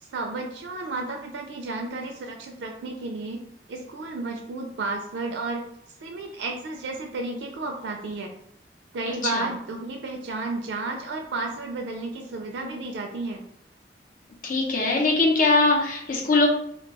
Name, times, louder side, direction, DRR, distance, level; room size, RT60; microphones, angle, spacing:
voice 1, 0.0-3.4 3.7-5.6 6.0-8.3 8.9-13.4, right 3 dB, 80° right, 2 dB, 0.4 m, -32 dB
voice 2, 14.4-16.5, left 3 dB, 50° left, 0 dB, 0.6 m, -21 dB
2.3 x 2.2 x 3.9 m, 0.71 s
head